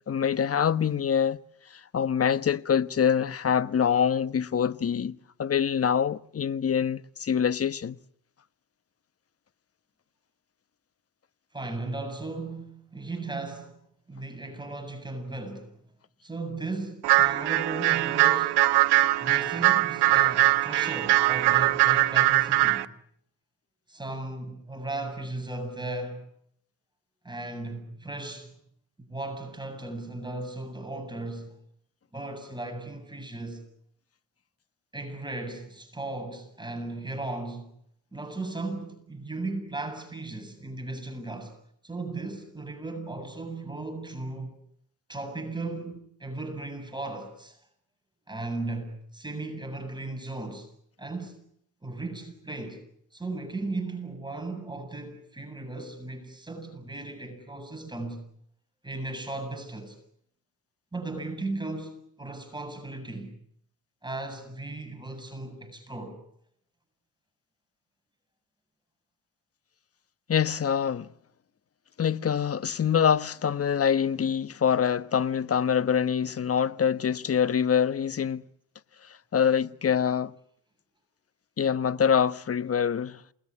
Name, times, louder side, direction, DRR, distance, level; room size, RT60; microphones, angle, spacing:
voice 1, 0.1-1.4 1.7-8.0 70.3-71.1 72.0-78.4 79.0-80.3 81.6-83.2, left 7 dB, 35° left, 1.2 m, -25 dB
voice 2, 11.5-13.8 14.1-15.8 16.2-18.6 19.2-22.9 23.9-26.3 27.2-28.5 29.1-31.6 32.1-33.6 34.9-37.7 38.1-41.6 41.8-44.6 45.1-47.6 48.3-50.7 51.0-51.4 51.8-52.8 53.1-58.2 58.8-60.0 60.9-63.3 64.0-66.2, right 2 dB, 10° right, 7.8 m, -36 dB
sound 1, 17.0-22.9, right 17 dB, 75° right, 1.2 m, -22 dB
28.5 x 20.5 x 9.9 m
supercardioid pair, 65°, 39 cm